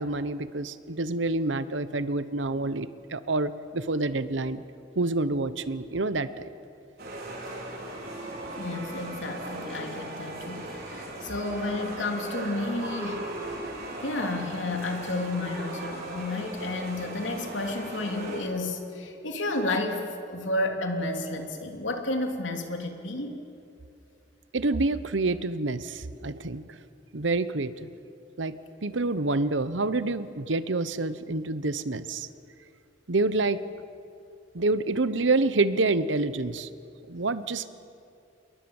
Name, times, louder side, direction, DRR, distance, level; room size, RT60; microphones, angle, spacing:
voice 1, 0.0-4.6 5.0-6.5 24.5-26.6 27.1-27.9 28.4-28.5 28.8-32.3 33.1-33.6 34.5-36.7 37.1-37.7, right 2 dB, 80° right, 13 dB, 1.0 m, -27 dB
sound 1, 7.0-18.4, right 1 dB, 55° right, 4.9 m, -38 dB
voice 2, 8.6-13.3 14.0-23.4, left 2 dB, 90° left, 3 dB, 3.2 m, -31 dB
28.0 x 21.5 x 7.2 m, 2.6 s
head